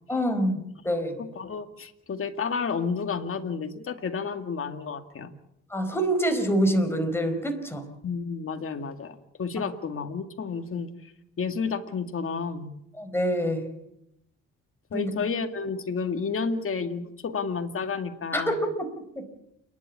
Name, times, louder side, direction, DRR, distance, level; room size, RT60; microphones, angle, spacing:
voice 1, 0.1-1.2 5.7-7.9 13.0-13.7 14.9-15.1 18.3-18.7 19.1-19.2, equal, 10° left, 5 dB, 4.7 m, -26 dB
voice 2, 1.2-5.3 8.0-11.1 11.4-12.7 14.9-18.6, left 5 dB, 45° left, 7 dB, 2.2 m, -31 dB
29.0 x 11.5 x 8.6 m, 0.82 s
cardioid pair, 90°, 30 cm